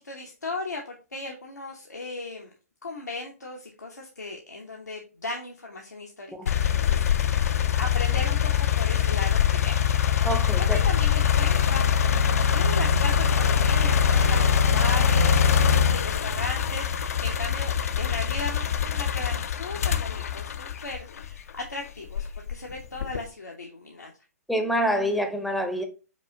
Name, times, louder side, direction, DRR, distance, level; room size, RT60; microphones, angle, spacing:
voice 1, 0.0-2.5 2.8-7.0 7.8-8.5 8.8-9.8 10.6-11.9 12.3-17.7 18.0-24.1, left 2 dB, 85° left, 0.8 m, -36 dB
sound 1, 6.5-21.5 22.1-23.3, left 8 dB, 65° left, 0.4 m, -23 dB
voice 2, 10.2-10.8 24.5-25.8, equal, ahead, 0.6 m, -26 dB
sound 2, 10.6-17.0, right 3 dB, 75° right, 0.7 m, -36 dB
5.2 x 2.4 x 3.7 m
figure-of-eight pair, 120°, 9 cm